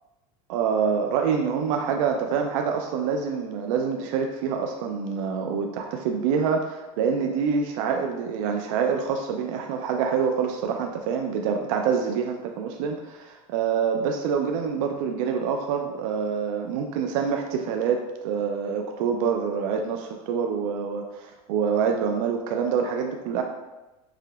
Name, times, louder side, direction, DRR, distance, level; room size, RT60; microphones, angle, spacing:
voice 1, 0.5-23.4, right 6 dB, 70° right, 3 dB, 0.4 m, -26 dB
4.8 x 2.8 x 2.3 m, 1.0 s
cardioid pair, 165°, 18 cm